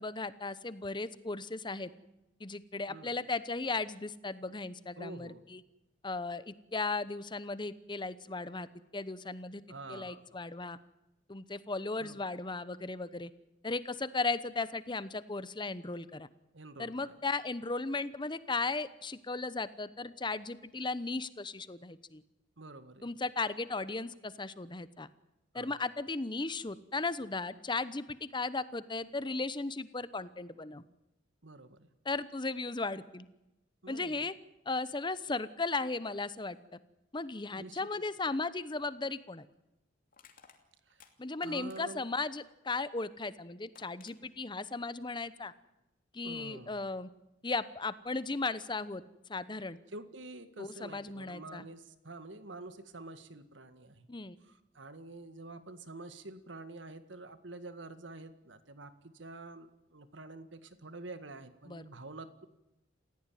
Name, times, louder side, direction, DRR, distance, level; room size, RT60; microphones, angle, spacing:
voice 1, 0.0-1.9 2.4-5.6 6.0-8.7 8.9-9.6 9.9-10.8 11.3-13.3 13.6-16.3 16.8-22.2 23.0-25.1 25.5-30.8 32.0-33.3 33.9-34.3 34.6-36.8 37.1-39.5 41.2-45.5 46.1-47.1 47.4-49.0 49.3-49.8 50.6-51.7 54.1-54.4 61.7-61.8, left 3 dB, 25° left, 15 dB, 0.9 m, -36 dB
voice 2, 5.0-5.4 9.7-10.2 12.0-12.2 16.5-17.1 22.6-23.1 25.5-25.7 31.4-31.9 33.8-34.2 37.6-37.8 40.9-41.0 41.4-42.0 46.2-46.8 49.9-54.1 54.4-62.5, right 2 dB, 70° right, 11 dB, 1.9 m, -47 dB
Crushing, 38.7-38.9 40.1-42.1 43.3-43.4 43.7-44.2, left 6 dB, 45° left, 2.9 m, -59 dB
28.0 x 16.0 x 9.3 m, 0.94 s
head